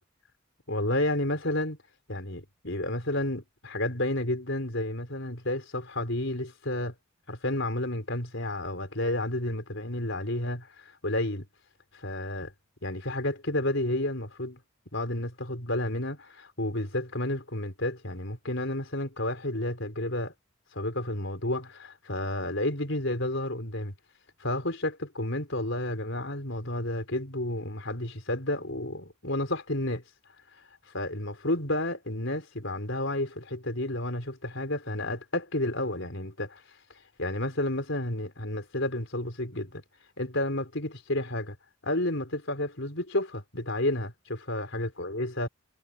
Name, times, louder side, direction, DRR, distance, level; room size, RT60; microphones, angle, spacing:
voice 1, 0.7-1.8 2.1-6.9 7.3-11.5 11.9-12.5 12.8-14.6 14.9-20.3 20.7-23.9 24.4-30.0 30.9-36.6 37.2-39.8 40.2-41.6 41.8-45.5, left 1 dB, 60° left, 5.2 m, -31 dB
head